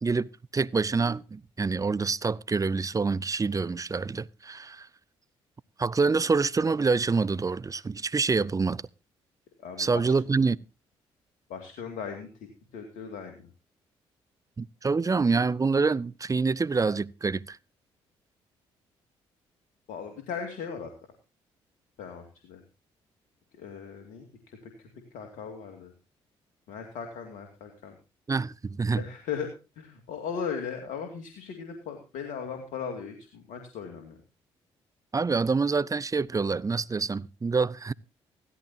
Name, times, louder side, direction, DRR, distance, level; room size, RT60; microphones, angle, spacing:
voice 1, 0.0-4.9 5.8-8.8 9.8-10.6 14.6-17.6 28.3-29.0 35.1-37.9, right 4 dB, 25° right, 0.6 m, -26 dB
voice 2, 9.6-10.1 11.5-12.5 12.7-13.5 19.9-20.9 22.0-22.6 23.5-25.9 26.7-27.9 28.9-29.5 29.8-34.2, left 6 dB, 75° left, 2.5 m, -38 dB
16.5 x 14.0 x 2.8 m
hypercardioid pair, 50°, 13 cm